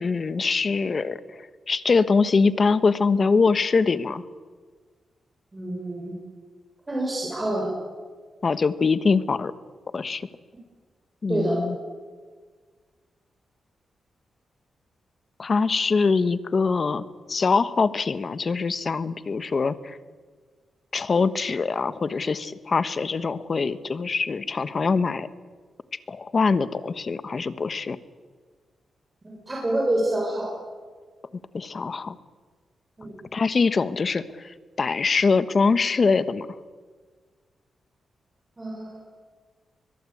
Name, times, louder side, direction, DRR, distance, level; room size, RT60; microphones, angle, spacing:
voice 1, 0.0-4.2 8.4-9.5 9.9-10.3 11.2-11.8 15.4-20.0 20.9-25.3 26.1-28.0 31.5-32.2 33.3-36.5, left 4 dB, 45° left, 14 dB, 1.2 m, -23 dB
voice 2, 5.5-6.1 6.9-7.7 11.3-11.6 29.2-30.5 33.0-33.1 38.6-39.0, right 1 dB, 25° right, -2 dB, 6.6 m, -27 dB
23.0 x 21.5 x 8.6 m, 1.5 s
cardioid pair, 85°, 0 cm